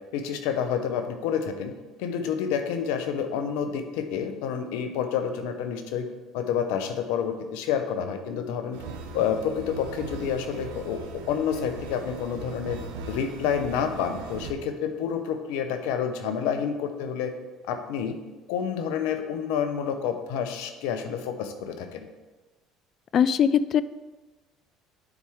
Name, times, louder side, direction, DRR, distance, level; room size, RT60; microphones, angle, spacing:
voice 1, 0.1-1.7 2.0-6.1 6.3-8.8 9.1-12.8 13.1-17.3 17.7-18.2 18.5-22.1, left 7 dB, 75° left, 7 dB, 0.7 m, -29 dB
sound 1, 8.7-14.5, right 4 dB, 80° right, 0.8 m, -39 dB
voice 2, 23.1-23.8, left 8 dB, 50° left, 15 dB, 0.3 m, -20 dB
9.8 x 4.5 x 3.6 m, 1.2 s
hypercardioid pair, 75°, 0 cm